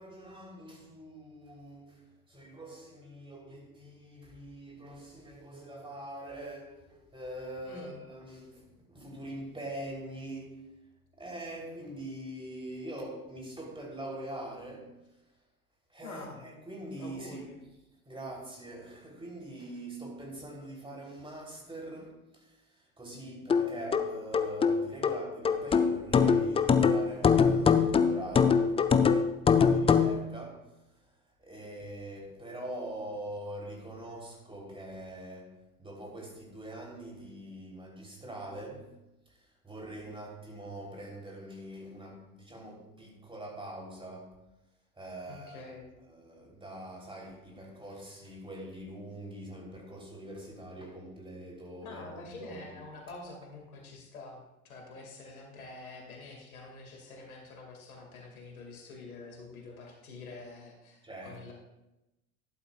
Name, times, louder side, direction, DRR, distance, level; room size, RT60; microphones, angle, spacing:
voice 1, 0.0-10.8 11.2-15.1 15.9-17.5 18.0-28.9 29.7-39.0 39.3-44.4 44.9-45.7 46.0-52.8 61.0-61.4, right 1 dB, 10° right, 3.3 m, -44 dB
voice 2, 16.0-16.4 17.0-17.6 29.5-29.8 45.3-45.9 51.8-61.5, left 3 dB, 75° left, 2.2 m, -47 dB
sound 1, 23.5-30.2, left 6 dB, 15° left, 0.4 m, -24 dB
12.5 x 11.5 x 2.4 m
figure-of-eight pair, 70°, 43 cm